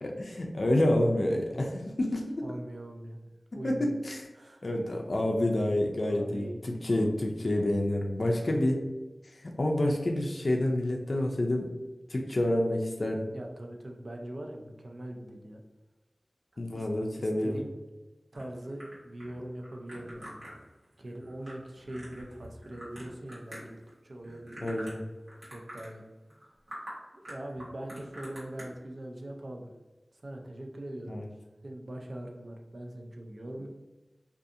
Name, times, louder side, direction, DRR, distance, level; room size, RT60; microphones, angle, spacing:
voice 1, 0.0-2.4 3.6-4.3 4.6-8.8 9.3-11.7 12.1-13.3 16.6-17.6 24.6-25.0 31.1-31.3, left 1 dB, 65° left, 1 dB, 0.3 m, -28 dB
voice 2, 2.4-3.2 3.5-3.9 4.3-4.6 6.0-6.6 6.8-7.0 13.3-15.6 16.5-16.9 17.2-17.7 18.3-20.4 21.0-24.8 25.4-26.0 27.1-29.7 30.1-31.2 31.6-33.7, right 1 dB, 70° right, 2 dB, 0.4 m, -42 dB
sound 1, 18.3-23.9 24.2-25.0 25.3-25.9 26.3-26.4 26.7-26.9 27.2-28.6, equal, 85° right, 1.1 m, -46 dB
2.5 x 2.3 x 2.6 m, 1.1 s
wide cardioid pair, 60°, 0 cm